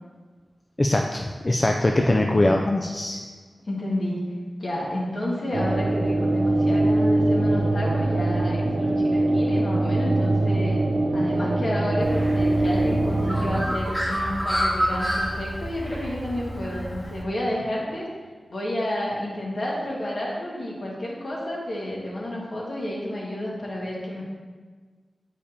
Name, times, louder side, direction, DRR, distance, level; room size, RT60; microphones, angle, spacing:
voice 1, 0.8-3.2, left 1 dB, 30° left, 2 dB, 0.3 m, -22 dB
voice 2, 1.9-2.6 3.6-4.2 4.6-10.8 11.1-18.1 18.5-24.3, left 1 dB, 60° left, -5 dB, 1.6 m, -30 dB
sound 1, 5.5-13.6, right 2 dB, 70° right, 0.5 m, -22 dB
Bird, 12.0-17.2, equal, ahead, 1.2 m, -29 dB
8.4 x 5.0 x 2.8 m, 1.5 s
wide cardioid pair, 90°, 0 cm